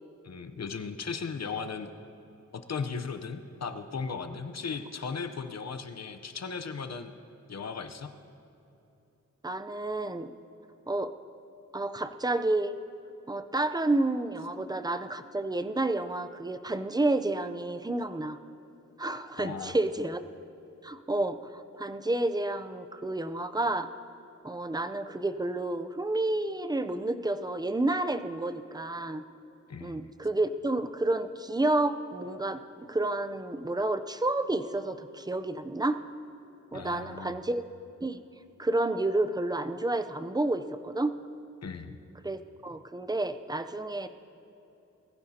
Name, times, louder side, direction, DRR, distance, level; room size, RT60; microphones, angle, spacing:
voice 1, 0.2-1.9 2.5-7.1 7.5-8.1 19.4-19.8 29.7-30.0 36.7-37.3 41.6-42.0, left 5 dB, 60° left, 8 dB, 0.9 m, -37 dB
voice 2, 9.4-10.3 10.9-11.1 11.7-12.7 13.3-18.4 19.0-20.2 20.8-23.9 24.4-29.2 29.8-36.0 36.7-37.6 38.0-38.2 38.6-41.1 42.2-44.1, right 2 dB, 15° right, 10 dB, 0.6 m, -30 dB
21.5 x 14.5 x 2.9 m, 2.9 s
wide cardioid pair, 85°, 30 cm